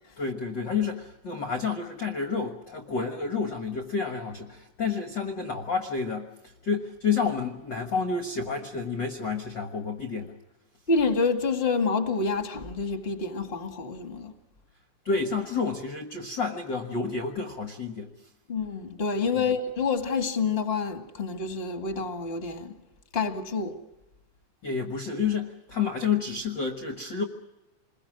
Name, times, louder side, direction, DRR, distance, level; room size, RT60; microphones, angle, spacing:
voice 1, 0.2-10.4 15.1-18.1 19.3-19.5 24.6-27.2, left 5 dB, 45° left, 1.7 m, -30 dB
voice 2, 10.9-14.4 18.5-22.8 23.1-23.8, left 4 dB, 20° left, 1.8 m, -28 dB
28.0 x 21.5 x 6.2 m
omnidirectional pair, 3.5 m